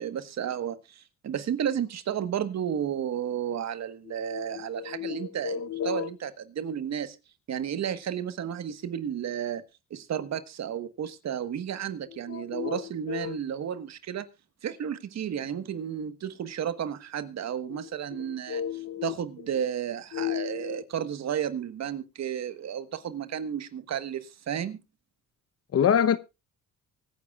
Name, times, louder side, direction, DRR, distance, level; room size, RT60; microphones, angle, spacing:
voice 1, 0.0-7.2 7.5-9.6 9.9-14.3 14.6-18.6 19.0-24.8, right 9 dB, 60° right, 1.5 m, -32 dB
voice 2, 4.2-6.1 12.3-13.4 18.2-19.1 20.1-20.8 25.7-26.2, left 9 dB, 50° left, 1.0 m, -29 dB
24.0 x 9.7 x 2.4 m
cardioid pair, 90°, 30 cm